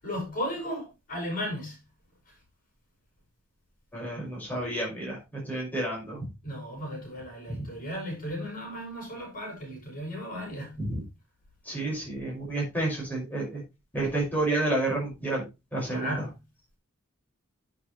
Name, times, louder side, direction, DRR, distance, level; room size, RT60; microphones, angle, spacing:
voice 1, 0.0-1.8 6.4-10.7 15.9-16.4, equal, 45° left, 6.6 m, -35 dB
voice 2, 3.9-5.2 5.5-6.2 7.5-7.6 10.8-11.0 11.7-13.6 13.9-15.4 15.7-16.1, right 2 dB, 10° left, 5.8 m, -30 dB
9.0 x 8.5 x 3.3 m
head